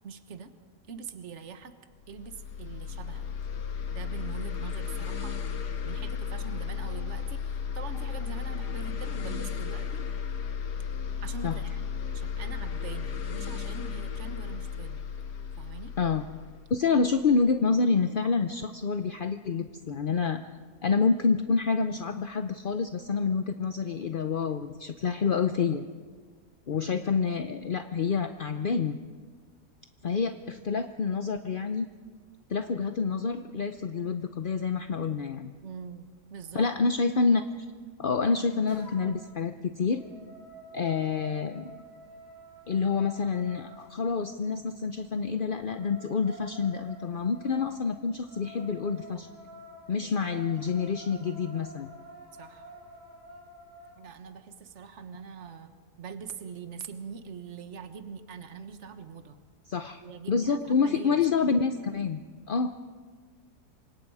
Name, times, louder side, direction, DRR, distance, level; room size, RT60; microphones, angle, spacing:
voice 1, 0.0-0.5 0.9-1.7 2.1-3.3 3.9-5.4 5.8-10.0 11.2-15.1 15.6-15.9 35.6-36.7 50.0-50.3 52.4-52.7 54.0-55.7 56.0-59.4 60.0-61.2, right 6 dB, 45° right, 8 dB, 1.5 m, -43 dB
sound 1, 2.0-17.5, left 7 dB, 80° left, 1.8 m, -34 dB
voice 2, 16.7-20.4 20.8-25.9 26.7-29.0 30.0-31.9 32.5-35.5 36.5-37.4 38.0-40.0 40.7-41.7 42.7-49.3 49.9-51.9 59.7-60.0 60.3-62.2 62.5-62.7, left 5 dB, 45° left, 8 dB, 0.7 m, -27 dB
sound 2, 38.7-39.3 39.7-43.9 45.3-53.9, equal, 90° right, 8.3 m, -49 dB
28.5 x 25.0 x 4.9 m, 1.5 s
omnidirectional pair, 1.7 m